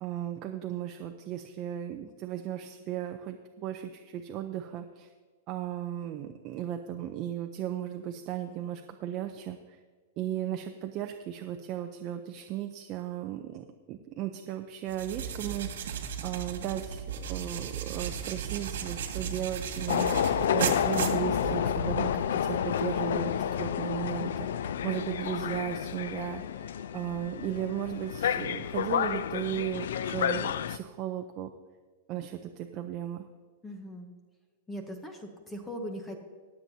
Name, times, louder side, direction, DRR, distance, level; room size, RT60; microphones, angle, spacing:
voice 1, 0.0-5.1 5.5-9.8 10.2-15.9 16.2-26.6 26.9-31.5 32.1-33.3, right 11 dB, 25° right, 5 dB, 0.5 m, -36 dB
sound 1, 14.9-21.9, right 7 dB, 75° right, 1.8 m, -35 dB
sound 2, 19.9-30.8, left 9 dB, 75° left, 0.4 m, -30 dB
voice 2, 33.6-34.1 34.7-36.2, equal, 5° left, 4 dB, 0.8 m, -39 dB
22.0 x 7.5 x 2.7 m, 1.5 s
supercardioid pair, 180°, 0 cm